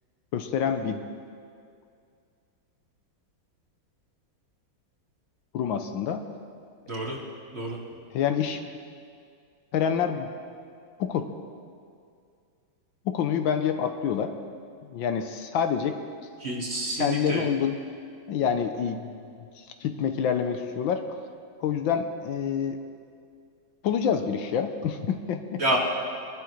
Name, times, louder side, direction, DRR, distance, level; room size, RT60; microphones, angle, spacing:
voice 1, 0.3-1.1 5.5-6.2 8.1-8.6 9.7-10.3 11.0-11.3 13.0-14.3 14.9-16.0 16.9-17.8 18.3-21.0 21.6-22.8 23.8-25.6, left 7 dB, 75° left, 7 dB, 1.5 m, -27 dB
voice 2, 16.4-17.5 25.6-25.8, right 1 dB, 35° right, -3 dB, 2.0 m, -28 dB
22.0 x 12.0 x 3.2 m, 2.3 s
omnidirectional pair, 2.2 m